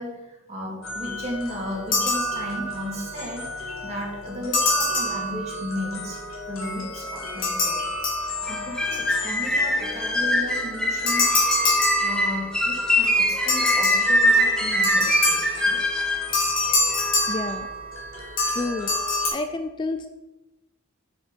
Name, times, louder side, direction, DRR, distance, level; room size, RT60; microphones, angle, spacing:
voice 1, 0.0-7.9 8.4-11.3 12.0-15.4 15.6-15.8, equal, 30° right, -2 dB, 2.2 m, -34 dB
sound 1, 0.8-19.3, left 1 dB, 75° left, 2.0 m, -37 dB
sound 2, 1.9-2.9 4.5-5.8 7.4-8.8 11.1-12.7 13.5-15.7 16.3-18.0 18.4-19.3, left 2 dB, 40° left, 2.3 m, -25 dB
sound 3, 8.5-16.3, equal, 5° left, 0.7 m, -23 dB
voice 2, 17.3-17.7 18.5-18.9 19.3-20.1, left 3 dB, 20° left, 8 dB, 0.3 m, -29 dB
7.2 x 6.1 x 5.2 m, 1.0 s
head